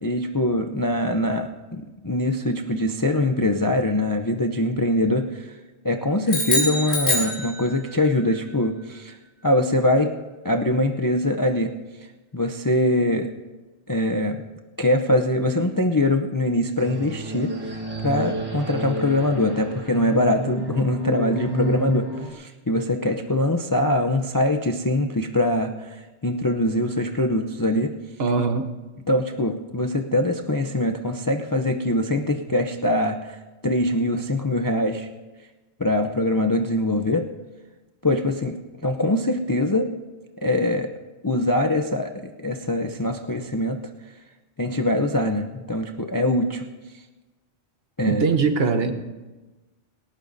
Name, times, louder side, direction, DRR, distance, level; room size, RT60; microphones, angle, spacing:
voice 1, 0.0-5.5 5.8-9.1 9.4-10.1 10.4-11.7 12.3-13.3 13.9-14.4 14.8-17.8 18.0-27.9 29.1-33.4 33.6-35.1 35.8-37.3 38.0-38.6 38.8-39.9 40.4-40.9 41.2-43.8 44.6-46.6 48.0-48.2, left 1 dB, 25° left, 5 dB, 0.4 m, -23 dB
sound 1, 6.3-8.0, left 1 dB, 45° left, 4.0 m, -24 dB
sound 2, 16.8-22.3, right 1 dB, 20° right, 1.3 m, -30 dB
voice 2, 28.2-28.7 48.1-48.9, right 4 dB, 55° right, 7 dB, 1.1 m, -21 dB
19.0 x 18.0 x 2.7 m, 1.2 s
omnidirectional pair, 1.3 m